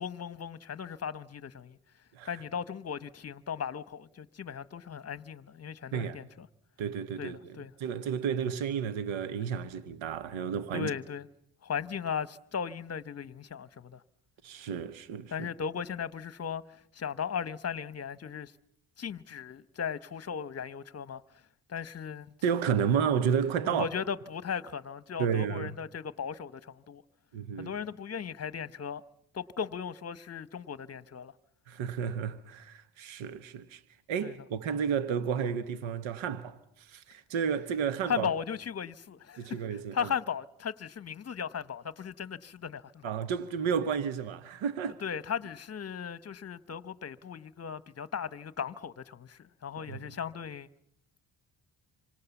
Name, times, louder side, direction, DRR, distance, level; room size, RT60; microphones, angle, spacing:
voice 1, 0.0-1.8 2.2-6.5 7.2-7.7 10.7-11.3 11.6-14.0 15.3-18.5 19.0-21.2 21.7-22.3 23.6-27.0 27.6-29.0 29.3-31.3 34.2-34.3 38.1-43.1 45.0-50.7, left 7 dB, 30° left, 1.0 m, -37 dB
voice 2, 6.8-7.4 7.8-10.9 14.4-15.5 22.4-23.8 25.2-25.7 27.3-27.7 31.7-33.8 34.1-38.3 39.4-40.1 43.0-45.0 49.9-50.1, right 7 dB, 85° right, 1.3 m, -31 dB
28.0 x 25.5 x 7.1 m
cardioid pair, 100°, 46 cm